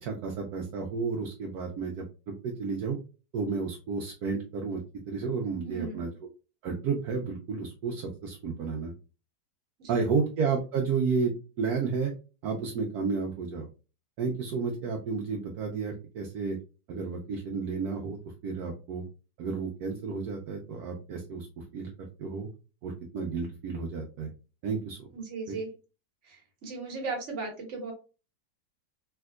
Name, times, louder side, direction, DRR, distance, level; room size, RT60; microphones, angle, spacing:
voice 1, 0.0-3.0 3.3-4.8 5.1-6.1 6.6-8.9 9.9-12.1 12.4-13.7 14.2-16.6 16.9-19.0 19.4-21.5 21.7-21.9 22.2-22.5 22.8-24.3 24.6-25.1 25.5-25.6, right 5 dB, 70° right, 1 dB, 1.0 m, -31 dB
voice 2, 5.6-6.1 9.8-10.0 25.1-25.7 26.2-27.9, right 4 dB, 50° right, 1 dB, 1.3 m, -37 dB
3.4 x 2.8 x 2.3 m, 0.33 s
omnidirectional pair, 1.9 m